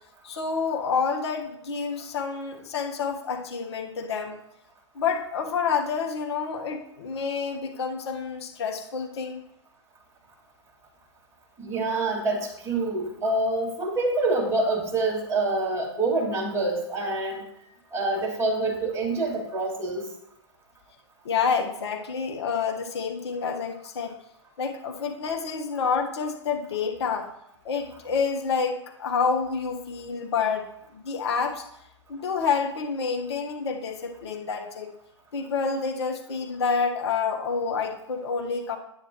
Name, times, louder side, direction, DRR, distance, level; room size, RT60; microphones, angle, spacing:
voice 1, 0.2-4.3 4.9-9.4 21.2-24.2 24.6-27.3 27.6-31.6 32.1-34.9 35.3-38.8, left 5 dB, 60° left, 2 dB, 1.4 m, -28 dB
voice 2, 11.6-17.4 17.9-20.1, right 2 dB, 15° right, -3 dB, 2.4 m, -26 dB
9.6 x 8.5 x 3.1 m, 0.79 s
figure-of-eight pair, 110°, 16 cm